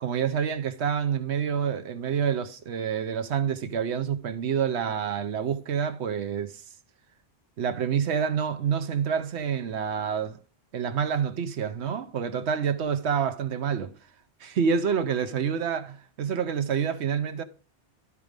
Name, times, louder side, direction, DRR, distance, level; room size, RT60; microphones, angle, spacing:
voice 1, 0.0-6.6 7.6-10.4 10.7-13.9 14.4-17.4, right 7 dB, 75° right, 1.1 m, -27 dB
11.5 x 4.8 x 5.1 m
omnidirectional pair, 1.1 m